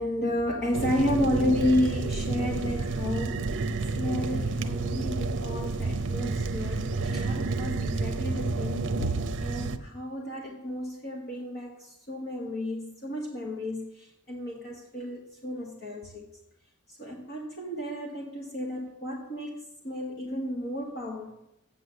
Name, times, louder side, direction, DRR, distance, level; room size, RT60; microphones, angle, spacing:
voice 1, 0.0-3.5 3.9-16.3 17.0-21.3, left 1 dB, 45° left, -1 dB, 1.3 m, -32 dB
sound 1, 0.7-9.8, right 3 dB, 55° right, 0.7 m, -30 dB
8.4 x 7.0 x 8.0 m, 0.88 s
head